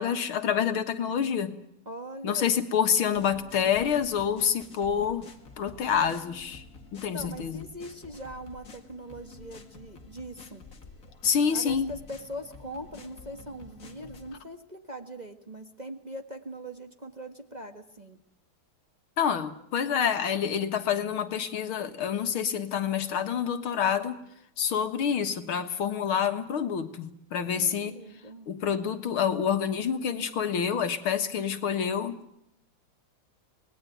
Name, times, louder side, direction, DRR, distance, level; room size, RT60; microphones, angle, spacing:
voice 1, 0.0-1.6 2.2-5.3 5.6-6.6 6.9-7.6 11.2-11.9 19.2-24.2 24.6-27.9 28.5-32.4, left 7 dB, 75° left, 8 dB, 2.4 m, -27 dB
voice 2, 1.8-2.5 7.1-10.6 11.5-18.2 27.5-28.5, right 1 dB, 20° right, 5 dB, 1.5 m, -41 dB
Cazanova Squirt, 3.1-14.4, left 4 dB, 40° left, 2.5 m, -49 dB
27.5 x 19.5 x 9.3 m, 0.78 s
omnidirectional pair, 2.4 m